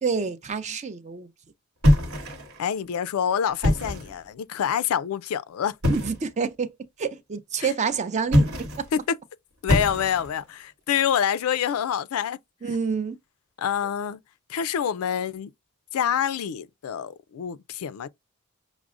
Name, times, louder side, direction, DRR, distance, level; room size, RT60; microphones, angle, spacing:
voice 1, 0.0-1.3 5.9-6.7 7.0-8.5 8.8-8.9 12.6-13.2, right 5 dB, 35° right, 0.5 m, -27 dB
sound 1, 1.8-2.6 3.5-4.2 5.8-6.3 8.2-8.9 9.7-10.4, left 1 dB, 85° right, 1.1 m, -23 dB
voice 2, 2.6-5.7 7.6-7.7 8.9-9.0 9.6-12.4 13.6-14.2 14.5-15.5 15.9-18.1, left 8 dB, 85° left, 0.3 m, -26 dB
5.9 x 2.0 x 2.4 m
head